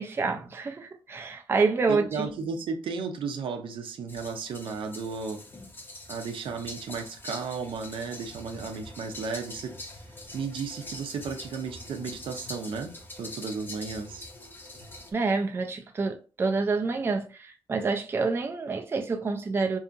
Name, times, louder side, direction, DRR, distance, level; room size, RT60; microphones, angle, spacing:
voice 1, 0.0-2.3 15.1-19.8, right 4 dB, 25° right, 0.4 m, -28 dB
voice 2, 1.9-5.4 6.1-9.7 10.3-12.9 13.2-14.2, right 5 dB, 80° right, 0.5 m, -34 dB
sound 1, 4.1-15.1, left 2 dB, 25° left, 0.6 m, -43 dB
2.7 x 2.5 x 2.4 m
wide cardioid pair, 120°, 9 cm